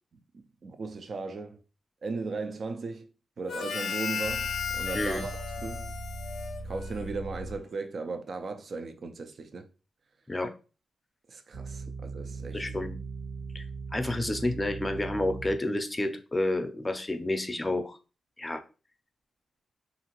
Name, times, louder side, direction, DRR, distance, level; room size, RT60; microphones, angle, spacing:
voice 1, 0.3-1.6 2.0-3.1 3.4-5.9 6.6-9.7 11.3-12.6, right 3 dB, 60° right, 0.4 m, -37 dB
Harmonica, 3.5-7.3, left 6 dB, 75° left, 0.4 m, -35 dB
sound 1, 4.2-7.6 11.5-15.6, right 3 dB, 80° right, 1.6 m, -39 dB
voice 2, 12.5-13.0 13.5-13.6 13.9-18.0 18.4-18.6, left 1 dB, 20° left, 0.5 m, -30 dB
2.7 x 2.5 x 3.0 m
cardioid pair, 65°, 0 cm